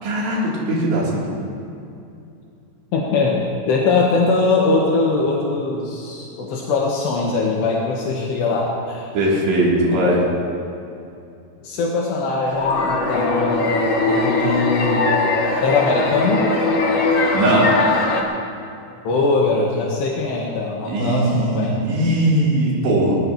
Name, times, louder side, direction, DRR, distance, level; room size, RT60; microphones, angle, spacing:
voice 1, 0.0-1.4 9.1-10.2 17.3-17.8 20.9-23.1, right 1 dB, 75° right, -5 dB, 5.4 m, -19 dB
voice 2, 2.9-9.1 10.0-10.1 11.6-13.8 14.1-15.1 15.6-16.5 19.1-21.7, left 3 dB, 80° left, -3 dB, 3.6 m, -21 dB
sound 1, 12.5-18.2, left 3 dB, 60° left, 1.2 m, -20 dB
22.5 x 18.5 x 3.0 m, 2.6 s
omnidirectional pair, 5.0 m